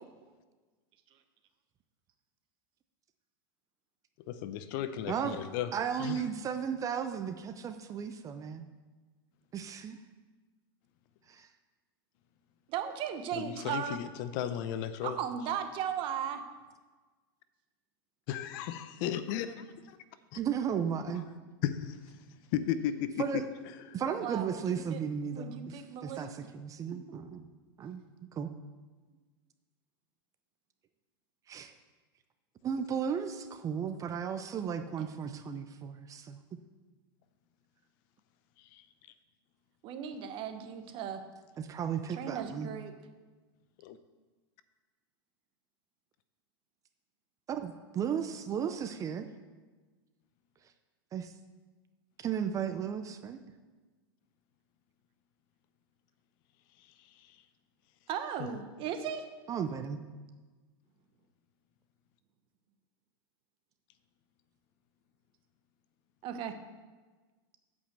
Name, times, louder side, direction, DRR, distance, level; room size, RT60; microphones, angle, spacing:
voice 1, 4.3-5.7 6.0-6.3 13.3-15.2 18.3-20.0 21.1-21.2 21.6-22.1 22.5-23.2 23.9-24.0 38.7-38.8 43.8-44.0 57.2-57.4 58.4-58.5, left 10 dB, 55° left, 12 dB, 0.7 m, -35 dB
voice 2, 5.7-8.7 9.5-10.0 11.3-11.5 20.3-21.3 23.2-23.4 23.9-27.4 27.8-28.0 28.3-28.5 31.5-31.7 32.6-36.4 41.6-42.7 47.5-49.3 51.1-51.3 52.2-53.4 59.5-60.0, right 7 dB, 25° right, 8 dB, 0.6 m, -35 dB
voice 3, 12.7-14.0 15.0-16.4 24.2-25.0 25.3-26.3 26.9-27.4 35.0-35.1 39.8-41.2 42.1-42.9 58.1-59.2 66.2-66.5, right 8 dB, 40° right, 7 dB, 1.0 m, -37 dB
8.3 x 5.4 x 7.5 m, 1.3 s
supercardioid pair, 130°, 13 cm